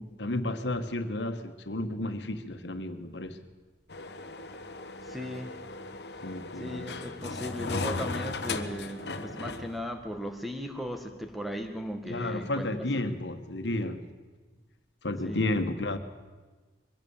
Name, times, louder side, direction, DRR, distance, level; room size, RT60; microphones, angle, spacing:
voice 1, 0.0-3.4 6.2-7.1 12.1-14.0 15.0-16.0, left 1 dB, 90° left, 8 dB, 1.5 m, -32 dB
sound 1, 3.9-9.8, left 3 dB, 70° left, 1.2 m, -37 dB
voice 2, 5.0-5.6 6.6-12.7 15.2-15.4, equal, ahead, 5 dB, 1.8 m, -37 dB
22.5 x 16.5 x 7.2 m, 1.3 s
head